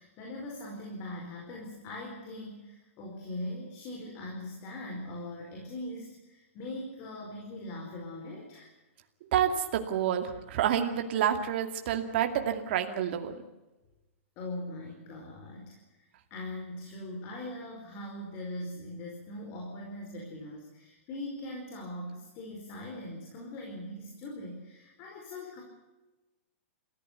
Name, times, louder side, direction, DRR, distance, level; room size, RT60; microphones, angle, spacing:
voice 1, 0.0-8.7 14.4-25.6, left 1 dB, 30° left, 0 dB, 5.0 m, -41 dB
voice 2, 9.3-13.3, right 9 dB, 50° right, 6 dB, 2.4 m, -28 dB
27.5 x 15.5 x 8.2 m, 1.1 s
hypercardioid pair, 155°, 7 cm